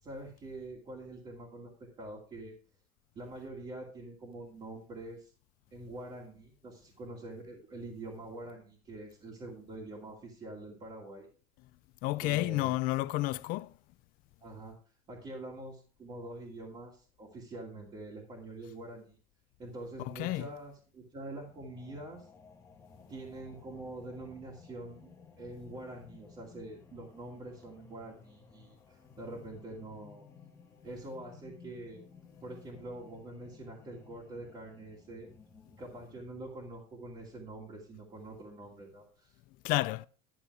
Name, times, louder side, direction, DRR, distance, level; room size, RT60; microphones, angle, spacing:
voice 1, 0.0-2.5 3.1-5.3 5.7-11.3 12.2-12.8 14.4-14.8 15.1-19.2 19.6-22.3 23.1-25.1 25.4-30.2 30.8-32.0 32.4-35.3 35.8-39.4, right 2 dB, 30° right, 2.5 m, -45 dB
voice 2, 12.0-13.7 20.2-20.5 39.6-40.1, left 19 dB, 50° left, 0.5 m, -30 dB
sound 1, 21.4-36.4, left 5 dB, 15° left, 1.4 m, -57 dB
12.0 x 6.9 x 4.7 m
cardioid pair, 150°, 18 cm